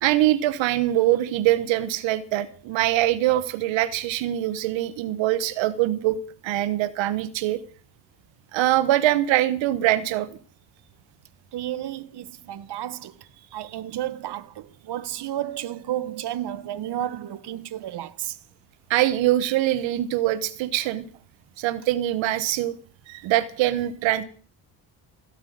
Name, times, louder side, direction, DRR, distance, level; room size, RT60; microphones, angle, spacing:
voice 1, 0.0-6.2 6.4-7.6 8.5-10.4 13.6-13.7 18.9-21.1 21.6-22.8 23.1-24.2, right 14 dB, 90° right, 1.3 m, -23 dB
voice 2, 11.5-13.1 13.5-18.4, right 12 dB, 60° right, 1.4 m, -32 dB
17.0 x 8.1 x 9.3 m
cardioid pair, 95°, 44 cm